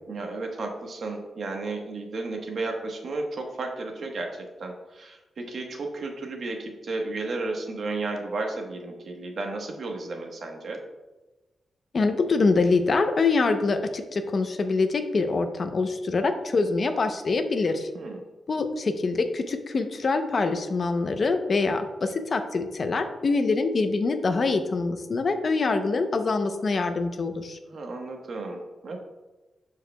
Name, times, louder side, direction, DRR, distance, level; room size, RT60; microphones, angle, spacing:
voice 1, 0.1-10.8 17.9-18.2 27.7-29.0, right 3 dB, 55° right, 2 dB, 1.1 m, -33 dB
voice 2, 11.9-17.9 18.5-27.6, left 3 dB, 45° left, 7 dB, 0.6 m, -25 dB
12.0 x 4.8 x 2.2 m, 1.1 s
wide cardioid pair, 145°, 0 cm